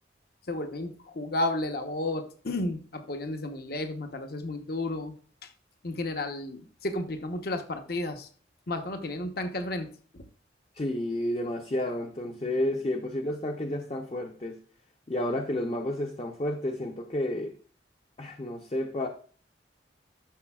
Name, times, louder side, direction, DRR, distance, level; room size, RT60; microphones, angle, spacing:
voice 1, 0.5-5.1 5.4-5.5 5.8-8.3 8.7-9.9 10.1-10.2, left 2 dB, 55° left, 0.9 m, -32 dB
voice 2, 10.7-14.6 15.1-17.5 18.2-19.1, left 1 dB, 30° left, 0.6 m, -31 dB
11.5 x 6.7 x 2.3 m
head